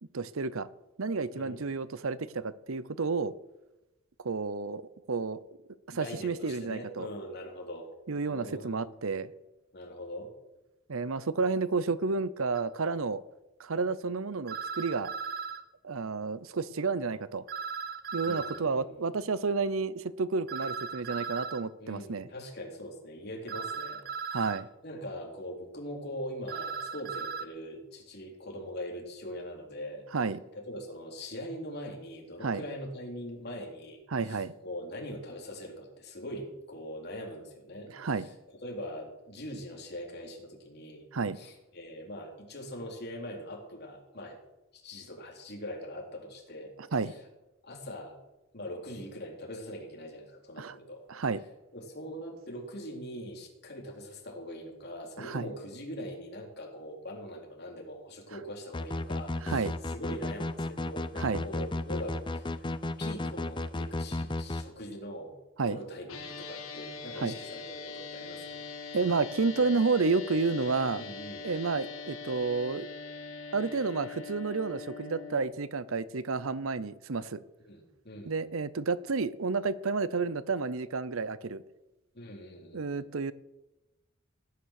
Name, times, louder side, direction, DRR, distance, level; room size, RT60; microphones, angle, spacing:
voice 1, 0.1-0.7 1.0-3.3 4.2-4.8 5.1-5.4 5.9-7.1 8.1-9.3 10.9-13.2 13.6-15.1 15.8-17.4 18.1-22.3 24.3-24.7 30.1-30.4 32.4-32.6 34.1-34.5 37.9-38.3 41.1-41.4 46.9-47.1 50.6-50.7 51.1-51.4 55.2-55.5 59.4-59.7 61.2-61.4 65.6-65.8 67.2-67.3 68.9-71.0 71.4-72.9 73.5-77.4 78.2-81.6 82.7-83.3, right 4 dB, 75° right, 17 dB, 0.7 m, -30 dB
voice 2, 1.3-1.7 5.9-7.9 8.2-8.9 9.7-10.3 18.3-19.1 21.8-24.0 24.3-24.5 24.8-30.0 30.5-38.3 38.6-41.1 41.3-44.4 44.7-46.7 47.0-47.2 47.6-48.2 48.5-51.0 51.7-62.6 63.0-65.3 65.7-68.6 71.0-71.5 77.6-78.3 82.1-83.1, equal, 50° left, 0 dB, 3.7 m, -42 dB
sound 1, 12.5-12.6 14.5-15.6 17.5-18.6 20.5-21.6 23.5-24.6 26.5-27.4, right 5 dB, 45° right, 0.8 m, -37 dB
sound 2, 58.7-64.6, left 2 dB, 20° left, 0.6 m, -33 dB
sound 3, 66.1-75.4, left 4 dB, 85° left, 3.6 m, -42 dB
17.0 x 9.7 x 6.6 m, 0.99 s
head